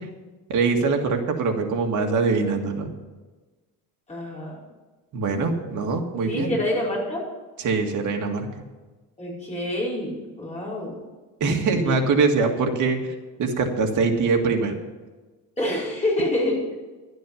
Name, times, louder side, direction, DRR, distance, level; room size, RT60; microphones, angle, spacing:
voice 1, 0.5-2.9 5.1-6.6 7.6-8.5 11.4-13.1 13.4-14.8, right 4 dB, 55° right, 3 dB, 2.0 m, -23 dB
voice 2, 4.1-4.6 6.2-7.2 9.2-10.9 11.7-11.9 15.6-16.6, left 1 dB, 20° left, -5 dB, 5.0 m, -27 dB
12.0 x 9.2 x 7.2 m, 1.3 s
cardioid pair, 150°, 37 cm